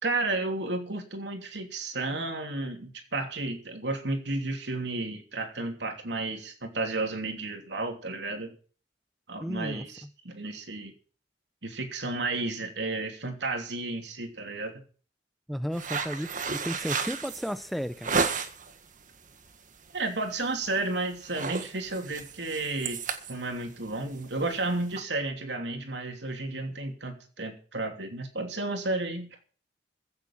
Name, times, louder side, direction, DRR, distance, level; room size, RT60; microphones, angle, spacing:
voice 1, 0.0-8.5 9.3-10.9 11.6-14.8 19.9-23.0 23.3-29.3, right 2 dB, 80° right, 3.0 m, -32 dB
voice 2, 9.4-9.9 15.5-18.1, equal, ahead, 0.6 m, -33 dB
Fall on the floor (v. cushion), 15.7-18.7 19.2-19.6 19.9-20.1 20.4-20.8 21.1-25.0, right 5 dB, 50° right, 1.6 m, -33 dB
15.5 x 7.5 x 7.4 m
head